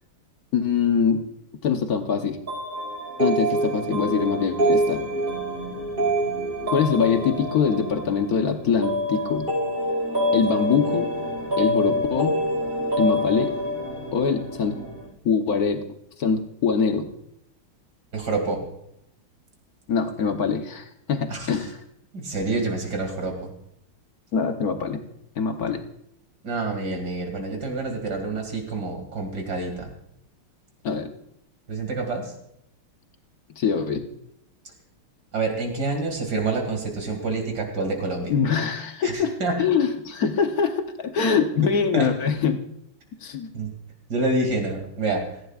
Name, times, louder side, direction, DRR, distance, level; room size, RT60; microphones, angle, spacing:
voice 1, 0.5-1.3 1.6-2.4 3.2-5.0 6.7-9.5 10.3-11.1 11.6-12.4 13.0-13.5 14.1-14.9 15.2-15.8 16.2-17.1 19.9-21.8 24.3-25.0 25.4-25.8 30.8-31.1 33.6-34.0 38.3-42.6 43.2-43.5, left 6 dB, 55° left, 6 dB, 1.2 m, -23 dB
sound 1, 2.5-15.1, equal, 25° right, 4.8 m, -26 dB
voice 2, 18.1-18.6 21.3-21.5 22.1-23.5 26.4-29.9 31.7-32.3 35.3-38.3 39.0-39.5 41.9-42.1 43.5-43.7 44.1-45.3, right 3 dB, 50° right, 3 dB, 2.8 m, -27 dB
17.0 x 15.0 x 2.4 m, 0.76 s
omnidirectional pair, 2.4 m